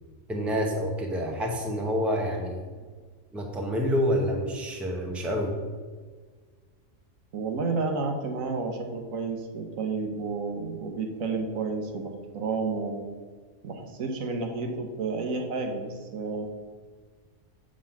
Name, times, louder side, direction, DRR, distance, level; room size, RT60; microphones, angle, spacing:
voice 1, 0.3-2.6 3.3-5.5, equal, ahead, 1 dB, 0.7 m, -28 dB
voice 2, 7.3-13.0 13.6-16.5, right 4 dB, 75° right, 3 dB, 1.3 m, -31 dB
7.4 x 3.8 x 5.7 m, 1.5 s
omnidirectional pair, 1.4 m